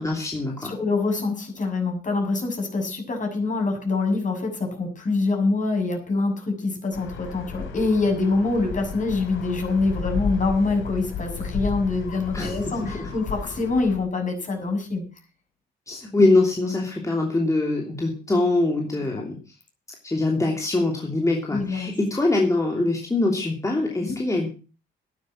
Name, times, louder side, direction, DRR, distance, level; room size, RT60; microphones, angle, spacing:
voice 1, 0.0-0.7 12.3-13.1 15.9-19.4 20.0-24.5, left 2 dB, 15° left, 0 dB, 3.0 m, -23 dB
voice 2, 0.6-15.0 19.2-19.3 21.5-21.9 24.0-24.2, left 3 dB, 40° left, 3 dB, 6.8 m, -25 dB
sound 1, 6.9-14.0, left 4 dB, 80° left, 3.6 m, -33 dB
12.0 x 11.0 x 6.0 m, 0.36 s
cardioid pair, 90°, 20 cm